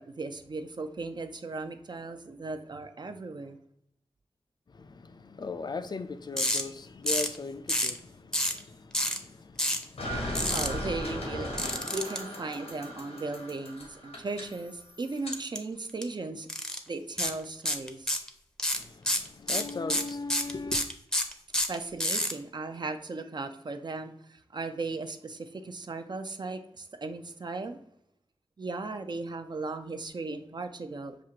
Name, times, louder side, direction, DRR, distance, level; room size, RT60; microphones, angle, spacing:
voice 1, 0.0-3.6 10.5-16.5 16.9-18.1 21.7-27.8 28.6-31.2, right 3 dB, 45° right, 0.5 m, -37 dB
voice 2, 4.7-10.5 18.7-20.9, left 3 dB, 45° left, 0.4 m, -39 dB
sound 1, 6.4-6.6 7.1-7.4 7.7-8.0 8.3-8.6 8.9-9.2 9.6-9.8 10.3-10.7 11.6-12.2 15.3-15.6 15.9-16.0 16.5-16.8 17.2-17.3 17.6-18.3 18.6-22.3, equal, 5° left, 0.6 m, -28 dB
sound 2, 10.0-15.4, left 1 dB, 85° left, 0.9 m, -37 dB
6.0 x 2.5 x 2.8 m
cardioid pair, 55°, 10 cm